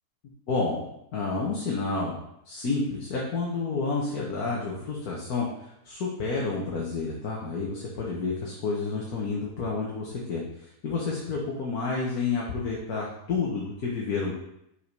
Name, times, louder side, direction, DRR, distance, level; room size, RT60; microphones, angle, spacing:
voice 1, 0.5-2.2 2.4-14.3, left 4 dB, 80° left, -4 dB, 1.7 m, -30 dB
5.7 x 5.0 x 5.3 m, 0.79 s
omnidirectional pair, 1.6 m